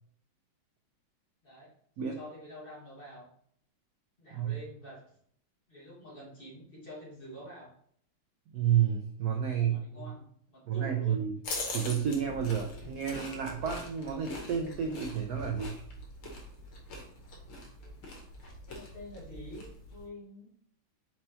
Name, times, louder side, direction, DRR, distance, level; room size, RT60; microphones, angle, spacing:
voice 1, 2.1-3.2 4.2-5.0 5.7-7.7 9.7-11.2 17.8-17.9 18.7-20.5, equal, 30° left, -6 dB, 1.5 m, -47 dB
voice 2, 8.5-10.1 10.7-11.3 11.7-15.7, right 8 dB, 75° right, 3 dB, 0.9 m, -30 dB
sound 1, 11.4-20.1, left 2 dB, 85° left, 1.9 m, -43 dB
4.5 x 4.3 x 2.7 m, 0.65 s
omnidirectional pair, 2.3 m